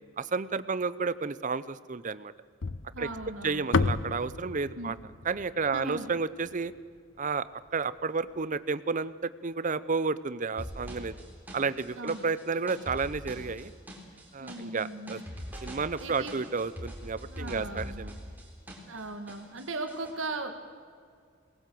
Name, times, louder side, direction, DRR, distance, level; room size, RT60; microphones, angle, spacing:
voice 1, 0.2-2.3 3.0-3.1 3.4-5.0 5.2-6.7 7.2-7.5 7.7-11.1 11.5-13.7 14.3-15.2 15.6-18.1, right 4 dB, 40° right, 16 dB, 0.6 m, -31 dB
sound 1, 2.6-6.9, left 3 dB, 75° left, 0.8 m, -32 dB
voice 2, 2.9-3.7 4.8-5.0 5.7-6.1 11.9-12.2 14.4-15.3 16.0-16.4 17.2-18.1 18.8-20.7, right 2 dB, 85° right, 5 dB, 1.6 m, -38 dB
sound 2, 10.6-19.0 19.3-20.1, equal, 10° right, 3.6 m, -42 dB
22.5 x 19.0 x 7.7 m, 2.1 s
head